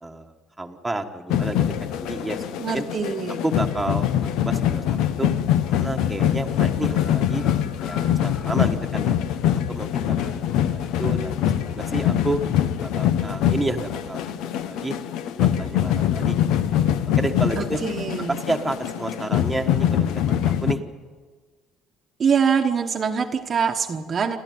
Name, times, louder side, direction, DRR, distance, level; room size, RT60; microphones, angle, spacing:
voice 1, 0.0-2.9 3.4-5.3 5.8-7.4 7.8-9.2 9.7-12.4 12.8-14.9 15.3-16.7 17.2-17.8 18.3-20.8, right 2 dB, 5° right, 3 dB, 1.4 m, -30 dB
sound 1, 1.3-20.7, left 10 dB, 75° left, 1.1 m, -24 dB
voice 2, 2.6-3.4 17.6-18.4 22.2-24.4, right 6 dB, 30° right, 4 dB, 1.2 m, -24 dB
sound 2, 5.5-5.7 5.9-9.0 9.3-9.4 9.8-9.9, left 6 dB, 50° left, 7.7 m, -46 dB
28.5 x 13.0 x 9.5 m, 1.4 s
cardioid pair, 145°, 0 cm